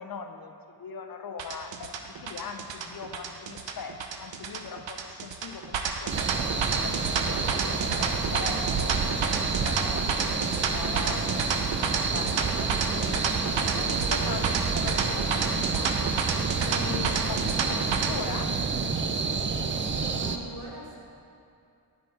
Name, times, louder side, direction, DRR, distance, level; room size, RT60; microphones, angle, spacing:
voice 1, 0.0-11.3 12.0-13.3 13.6-16.0 16.6-18.6, left 6 dB, 55° left, 6 dB, 0.5 m, -40 dB
sound 1, 1.4-18.1, right 6 dB, 80° right, 0.7 m, -30 dB
sound 2, 6.1-20.4, right 5 dB, 30° right, 0.4 m, -29 dB
sound 3, 6.7-17.8, left 5 dB, 90° left, 0.8 m, -44 dB
voice 2, 19.6-21.0, right 1 dB, 60° right, -5 dB, 2.0 m, -43 dB
10.0 x 5.2 x 4.4 m, 2.6 s
wide cardioid pair, 145°, 44 cm